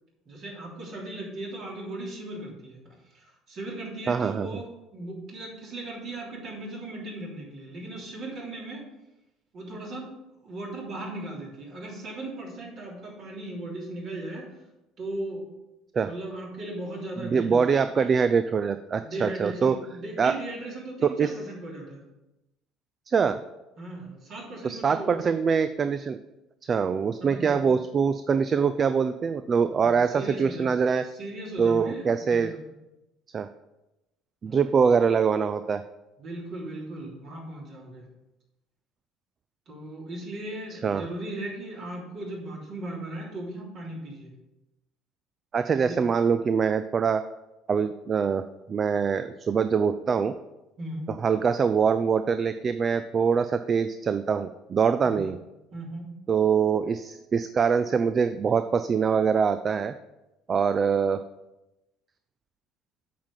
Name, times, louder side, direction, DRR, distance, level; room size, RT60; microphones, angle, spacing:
voice 1, 0.2-8.8 9.5-10.1 10.4-14.5 15.0-15.5 16.0-18.1 19.0-22.0 23.8-25.2 27.2-27.7 29.8-30.7 31.0-32.7 34.4-34.6 36.2-38.1 39.7-44.3 45.7-46.1 50.8-51.1 55.0-55.2 55.7-56.2, right 1 dB, 50° right, -3 dB, 3.3 m, -37 dB
voice 2, 4.1-4.5 15.9-16.1 17.2-19.8 20.2-20.3 21.0-21.3 23.1-23.4 24.6-26.2 26.7-31.1 31.6-32.5 33.3-33.5 34.4-35.8 40.8-41.0 45.5-47.2 47.7-50.4 51.2-55.4 56.3-59.9 60.5-61.2, right 6 dB, 35° right, 11 dB, 0.4 m, -24 dB
8.6 x 5.8 x 5.6 m, 0.96 s
hypercardioid pair, 60°, 0 cm